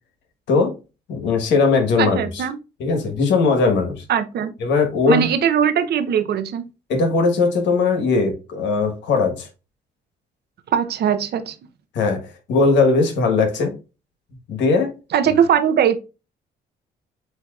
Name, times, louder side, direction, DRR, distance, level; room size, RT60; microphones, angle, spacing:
voice 1, 1.1-2.4 2.8-4.0 4.6-5.3 6.9-9.5 11.9-13.7 14.5-14.9, left 4 dB, 80° left, 1.3 m, -19 dB
voice 2, 2.0-2.6 4.1-4.5 5.1-6.6 10.7-11.6 15.1-16.0, right 8 dB, 65° right, 0.7 m, -20 dB
8.0 x 2.8 x 2.4 m
supercardioid pair, 70°, 18 cm